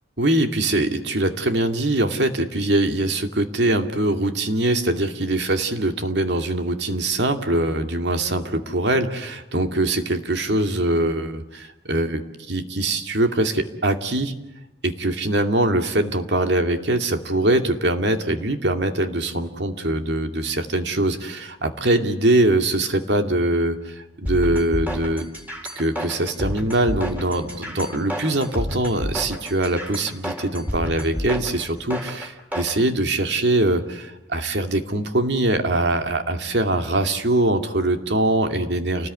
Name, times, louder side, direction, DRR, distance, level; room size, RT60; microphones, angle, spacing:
voice 1, 0.2-14.3 14.8-25.3 25.8-39.1, right 1 dB, 70° right, 6 dB, 2.5 m, -22 dB
sound 1, 24.3-32.7, equal, 10° right, 4.3 m, -30 dB
29.5 x 20.0 x 9.7 m, 0.91 s
head